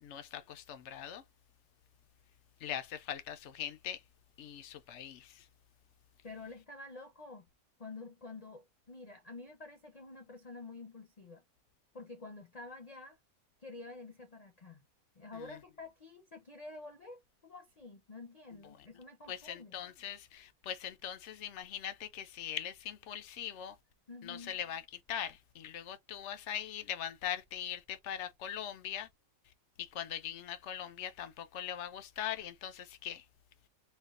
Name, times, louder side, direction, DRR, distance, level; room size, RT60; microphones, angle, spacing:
voice 1, 0.0-1.2 2.6-4.0 4.4-5.4 19.3-23.7 24.2-24.8 25.1-29.1 29.8-33.2, left 10 dB, 65° left, 0.8 m, -41 dB
voice 2, 6.2-7.5 7.8-11.4 11.9-13.2 13.6-14.8 15.1-19.8 24.1-24.6, left 3 dB, 40° left, 0.6 m, -49 dB
4.3 x 2.3 x 2.4 m
omnidirectional pair, 1.6 m